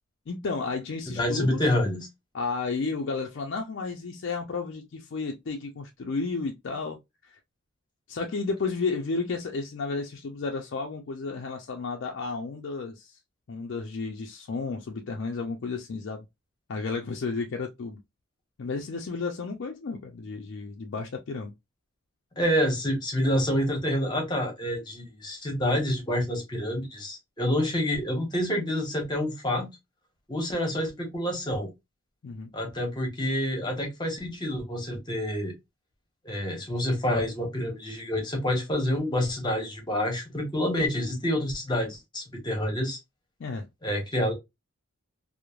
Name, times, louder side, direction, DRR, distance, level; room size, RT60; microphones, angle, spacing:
voice 1, 0.3-1.6 2.3-7.0 7.3-7.4 8.1-13.1 13.5-16.2 16.7-18.0 18.6-21.5 32.2-32.5 43.4-43.7, left 4 dB, 55° left, 0.4 m, -32 dB
voice 2, 1.1-2.1 22.4-29.7 30.3-31.7 32.5-35.5 36.2-43.0 43.8-44.3, left 1 dB, 20° left, 0.8 m, -28 dB
3.0 x 2.0 x 2.3 m
head